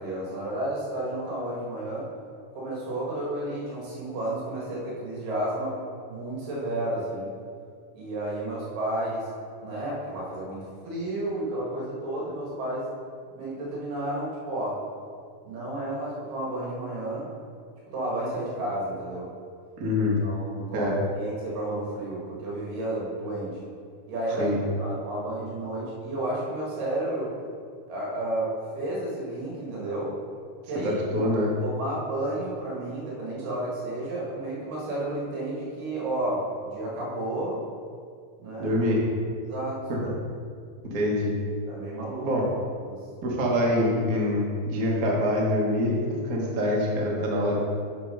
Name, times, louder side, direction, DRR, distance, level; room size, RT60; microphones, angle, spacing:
voice 1, 0.0-2.0 2.5-5.8 6.1-7.3 7.9-9.3 9.6-12.9 13.3-14.8 15.4-17.3 17.9-19.3 20.2-23.6 24.1-27.3 27.9-30.2 30.6-31.3 31.6-37.6 38.4-38.8 39.4-39.8 41.7-42.4 42.9-43.0 46.3-46.5, right 1 dB, 80° right, -5 dB, 3.4 m, -31 dB
voice 2, 19.8-20.2 20.7-20.9 24.4-24.6 30.7-31.5 38.6-39.0 39.9-40.1 40.8-41.4 42.2-42.4 43.2-45.9 46.2-47.6, left 1 dB, 65° right, -3 dB, 0.8 m, -25 dB
10.0 x 3.8 x 5.4 m, 2.2 s
omnidirectional pair, 3.8 m